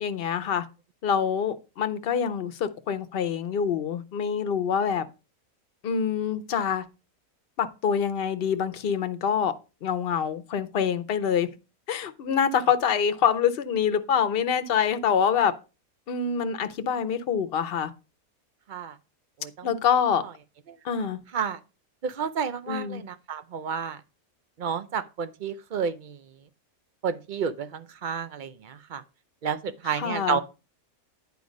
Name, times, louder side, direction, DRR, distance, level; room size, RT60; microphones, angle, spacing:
voice 1, 0.0-0.6 1.0-5.0 5.8-6.8 7.6-9.5 9.8-11.5 11.9-15.5 16.1-17.9 19.6-20.2 20.8-21.2 22.7-23.0 30.0-30.4, left 7 dB, 50° left, 0.8 m, -25 dB
voice 2, 19.4-19.8 20.2-20.3 20.7-20.8 21.3-21.6 22.0-24.0 24.6-26.2 27.0-29.0 29.4-30.4, right 7 dB, 65° right, 0.4 m, -31 dB
9.4 x 4.7 x 5.2 m
omnidirectional pair, 1.5 m